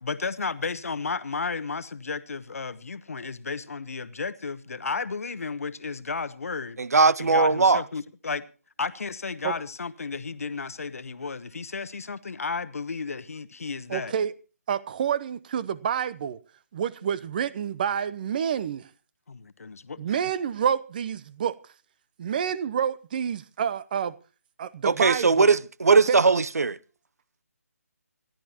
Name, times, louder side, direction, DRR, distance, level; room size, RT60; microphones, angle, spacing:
voice 1, 0.0-6.8 7.2-8.4 8.8-14.1 19.3-20.0, left 4 dB, 65° left, 1.1 m, -33 dB
voice 2, 6.8-7.8 24.8-26.8, right 4 dB, 70° right, 0.6 m, -20 dB
voice 3, 13.9-14.3 14.7-16.4 16.7-18.9 20.0-21.5 22.2-24.1 24.6-25.5 25.9-26.2, right 8 dB, 35° right, 0.7 m, -28 dB
26.0 x 11.5 x 2.9 m
figure-of-eight pair, 150°, 9 cm